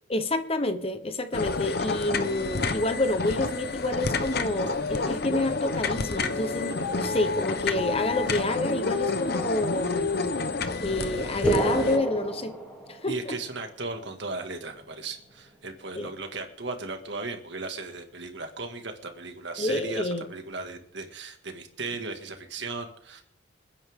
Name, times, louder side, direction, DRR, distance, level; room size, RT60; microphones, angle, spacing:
voice 1, 0.1-10.1 10.8-12.5 12.9-13.3 16.0-16.1 19.6-20.2, left 2 dB, 30° left, 9 dB, 1.0 m, -28 dB
sound 1, 1.3-12.0, left 3 dB, 55° left, 1.0 m, -29 dB
sound 2, 11.4-13.4, right 2 dB, 5° left, 2.8 m, -28 dB
voice 2, 13.1-23.2, right 3 dB, 65° right, 5 dB, 2.0 m, -36 dB
27.5 x 9.8 x 3.7 m, 0.64 s
head